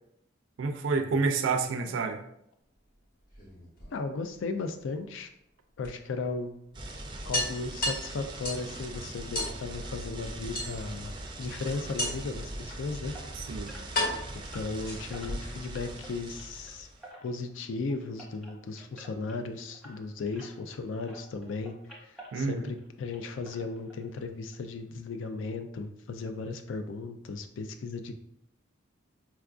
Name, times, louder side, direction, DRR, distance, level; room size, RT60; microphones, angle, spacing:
voice 1, 0.6-2.2 13.3-13.8 22.3-22.7, right 4 dB, 90° right, 6 dB, 0.4 m, -29 dB
sound 1, 3.2-4.4 5.8-5.9 6.3-6.4 6.7-6.8 7.3-8.7 9.3-9.6 10.5-11.1 12.0-12.4 13.2-13.3 13.9-15.3, left 1 dB, 50° left, 1.0 m, -33 dB
voice 2, 3.9-5.3 5.8-6.5 7.3-11.1 11.4-13.1 14.5-16.9 17.2-21.8 22.0-28.1, left 3 dB, 80° left, 8 dB, 0.4 m, -36 dB
sound 2, 6.7-17.0, right 1 dB, 25° right, 0.4 m, -41 dB
sound 3, 11.7-20.8 21.1-22.9 23.1-24.2 24.5-24.6 25.1-25.2 25.5-25.6, right 1 dB, ahead, 0.7 m, -52 dB
4.5 x 2.3 x 2.4 m, 0.75 s
head